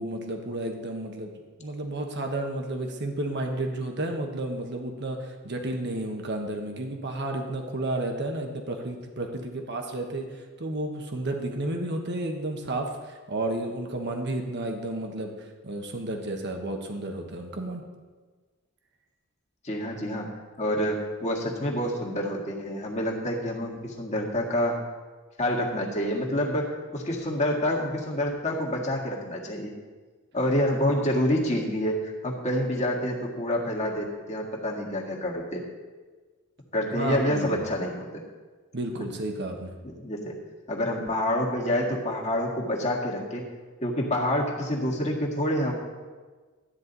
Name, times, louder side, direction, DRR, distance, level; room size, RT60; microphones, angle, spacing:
voice 1, 0.0-1.3 1.6-10.2 10.6-17.8 36.9-37.7 38.7-39.7, right 1 dB, 55° right, 3 dB, 1.3 m, -32 dB
voice 2, 19.6-20.3 20.6-24.8 25.4-29.7 30.3-35.6 36.7-38.2 39.8-40.4 40.7-43.5 43.8-45.7, left 1 dB, 30° left, -2 dB, 1.9 m, -27 dB
13.0 x 9.4 x 4.1 m, 1.4 s
head